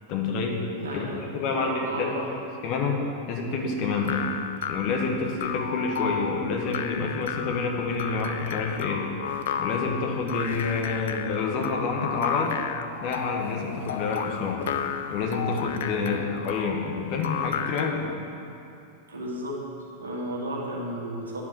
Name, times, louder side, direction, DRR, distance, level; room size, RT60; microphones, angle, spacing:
voice 1, 0.1-0.6 0.9-1.1 1.3-2.1 2.6-3.0 3.3-4.2 4.7-9.0 9.6-12.6 13.0-14.7 15.1-18.1, left 4 dB, 40° left, 1 dB, 1.2 m, -28 dB
voice 2, 0.8-2.3 16.0-16.3 19.1-19.6 20.0-21.4, right 1 dB, 70° right, -3 dB, 1.6 m, -33 dB
sound 1, 3.9-18.1, left 8 dB, 60° left, 0.4 m, -33 dB
9.6 x 5.1 x 6.4 m, 2.6 s
figure-of-eight pair, 90°, 0 cm